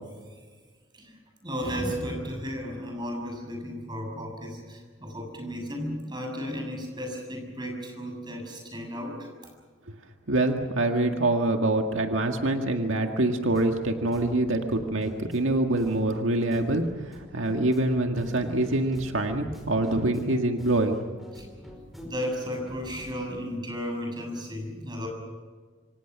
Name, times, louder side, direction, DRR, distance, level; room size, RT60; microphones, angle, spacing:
voice 1, 0.9-9.3 21.3-21.4 22.0-25.1, equal, 20° right, 2 dB, 6.9 m, -34 dB
voice 2, 10.3-21.0, right 2 dB, 85° right, 4 dB, 1.8 m, -25 dB
sound 1, 13.5-23.1, equal, ahead, 5.1 m, -46 dB
27.5 x 25.0 x 6.1 m, 1.5 s
head